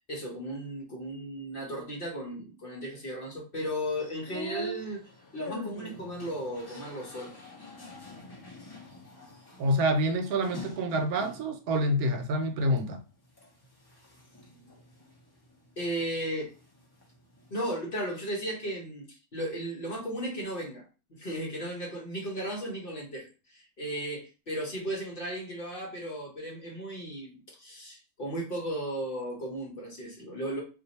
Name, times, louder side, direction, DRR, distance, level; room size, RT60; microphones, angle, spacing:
voice 1, 0.1-7.3 15.8-16.5 17.5-30.6, equal, 45° left, -1 dB, 1.0 m, -35 dB
sound 1, 3.7-11.6 12.0-12.8 13.3-16.2 16.4-17.6, equal, 25° left, 0.5 m, -44 dB
voice 2, 9.6-13.0, equal, 80° right, 5 dB, 1.1 m, -27 dB
2.6 x 2.5 x 4.0 m, 0.33 s
omnidirectional pair, 1.5 m